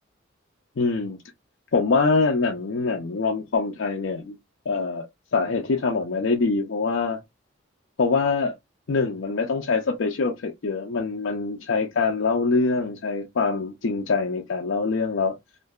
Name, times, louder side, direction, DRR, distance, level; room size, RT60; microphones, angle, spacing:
voice 1, 0.8-1.2 1.7-4.4 4.7-5.1 5.3-7.2 8.0-8.5 8.9-15.4, left 4 dB, 65° left, 0.5 m, -24 dB
2.8 x 2.5 x 2.3 m
head